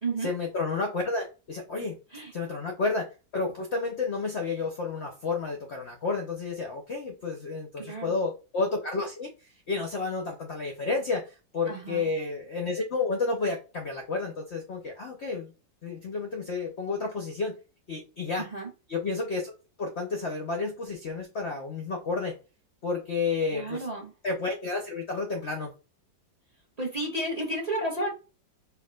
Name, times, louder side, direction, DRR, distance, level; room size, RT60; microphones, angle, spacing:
voice 1, 0.2-2.0 2.3-3.1 3.3-15.5 15.8-17.6 17.9-18.4 18.9-19.5 19.8-22.4 22.8-23.9 24.2-25.7, left 3 dB, 55° left, 2 dB, 0.7 m, -31 dB
voice 2, 7.8-8.2 11.7-12.1 18.4-18.7 23.5-24.1 26.8-28.1, right 1 dB, 25° right, -1 dB, 1.1 m, -32 dB
4.6 x 2.7 x 2.3 m, 0.31 s
omnidirectional pair, 2.0 m